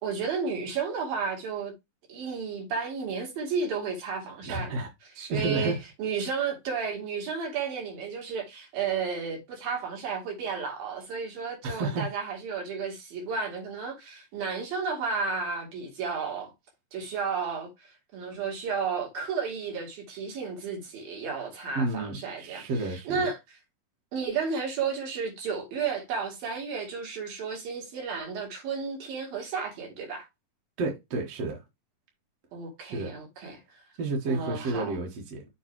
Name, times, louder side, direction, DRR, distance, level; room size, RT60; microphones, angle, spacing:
voice 1, 0.0-1.7 2.1-16.5 16.9-23.6 24.1-30.3 32.5-33.6 34.3-35.0, right 5 dB, 75° right, 4.1 m, -33 dB
voice 2, 4.5-4.9 5.1-5.8 11.6-12.1 21.8-23.3 30.8-31.6 32.8-33.1 34.0-35.5, right 2 dB, 55° right, 2.1 m, -31 dB
7.1 x 3.9 x 4.6 m
omnidirectional pair, 4.1 m